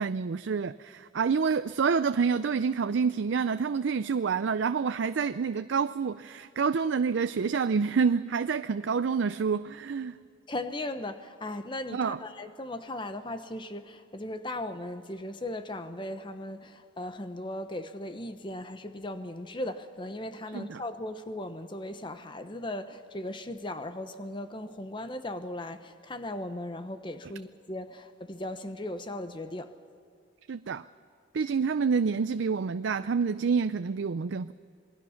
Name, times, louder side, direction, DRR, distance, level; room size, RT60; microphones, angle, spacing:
voice 1, 0.0-10.1 11.9-12.2 20.5-20.8 30.5-30.8 31.3-34.5, right 5 dB, 85° right, 0.5 m, -28 dB
voice 2, 10.5-29.7, left 1 dB, 25° left, 1.0 m, -37 dB
27.5 x 20.0 x 5.8 m
head